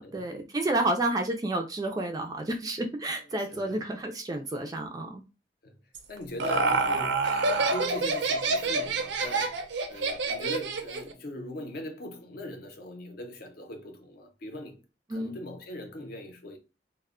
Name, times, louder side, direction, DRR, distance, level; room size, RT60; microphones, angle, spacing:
voice 1, 0.0-5.2 15.1-15.3, right 1 dB, 20° right, 0.3 m, -30 dB
voice 2, 3.4-3.8 5.6-5.8 6.1-14.8 15.1-16.6, left 1 dB, 55° left, 0.6 m, -41 dB
Laughter, 5.9-11.1, right 3 dB, 80° right, 0.5 m, -27 dB
2.1 x 2.1 x 3.5 m
head